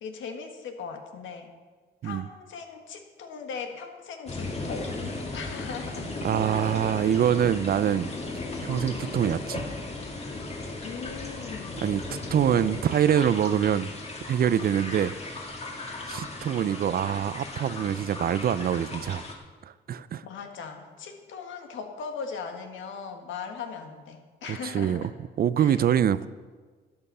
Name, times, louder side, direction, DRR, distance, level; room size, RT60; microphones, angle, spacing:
voice 1, 0.0-1.5 2.0-5.0 5.3-6.1 6.5-7.2 10.8-11.8 20.2-25.1 25.6-25.8, left 5 dB, 75° left, 5 dB, 1.6 m, -39 dB
sound 1, 4.3-19.3, left 2 dB, 30° left, 2.0 m, -36 dB
voice 2, 6.2-8.1 8.6-9.6 11.8-13.9 14.3-15.1 16.1-19.2 19.9-20.2 24.4-25.1 25.4-26.3, right 9 dB, 50° right, 16 dB, 0.5 m, -25 dB
12.5 x 8.8 x 5.5 m, 1.4 s
cardioid pair, 90°, 20 cm